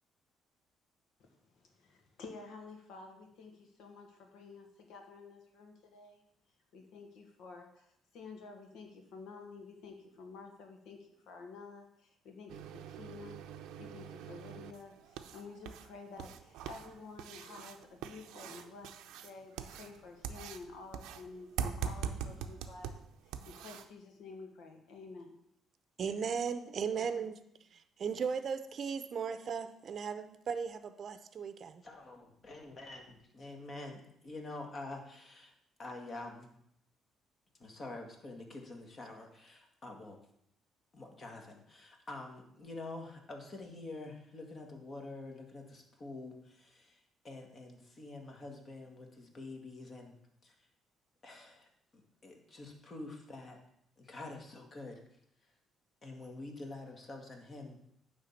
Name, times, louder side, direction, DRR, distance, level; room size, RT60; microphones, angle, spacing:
voice 1, 1.2-6.2 6.7-7.9 8.1-13.4 13.8-22.9 23.2-25.4, left 4 dB, 80° left, 3 dB, 1.8 m, -51 dB
sound 1, 12.5-23.9, right 8 dB, 90° right, 0.6 m, -43 dB
voice 2, 26.0-27.4 28.0-31.8, right 6 dB, 50° right, 11 dB, 0.7 m, -36 dB
voice 3, 31.8-35.5 35.8-36.5 37.6-40.2 40.9-50.2 50.4-50.5 51.2-51.7 51.9-53.6 54.0-55.0 56.0-57.8, left 2 dB, 40° left, 2 dB, 1.9 m, -47 dB
10.0 x 3.7 x 7.2 m, 0.75 s
cardioid pair, 100°, 0 cm